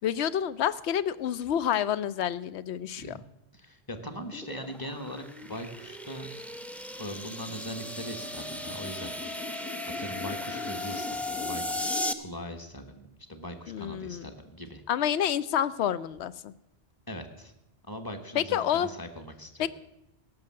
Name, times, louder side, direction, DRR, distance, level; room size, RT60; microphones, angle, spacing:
voice 1, 0.0-3.2 13.7-14.3 14.9-16.5 18.3-18.9 19.6-19.7, left 9 dB, 90° left, 16 dB, 0.9 m, -28 dB
voice 2, 3.5-6.3 7.0-9.6 10.0-14.8 17.1-17.5 17.9-19.7, equal, 20° left, 6 dB, 1.2 m, -41 dB
sound 1, 4.2-12.1, left 2 dB, ahead, 0.5 m, -36 dB
17.5 x 6.3 x 7.5 m, 0.88 s
omnidirectional pair, 1.1 m